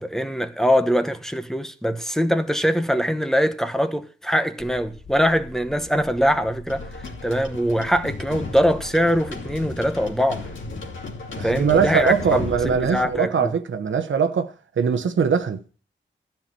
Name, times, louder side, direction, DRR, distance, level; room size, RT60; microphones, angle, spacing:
voice 1, 0.0-10.5 11.4-13.5, equal, ahead, 1.0 m, -23 dB
sound 1, 4.6-10.7, left 3 dB, 40° left, 1.1 m, -44 dB
sound 2, 6.7-13.2, left 2 dB, 85° left, 2.8 m, -35 dB
voice 2, 11.3-15.6, right 6 dB, 85° right, 1.1 m, -21 dB
13.5 x 5.9 x 8.9 m
wide cardioid pair, 120°, 19 cm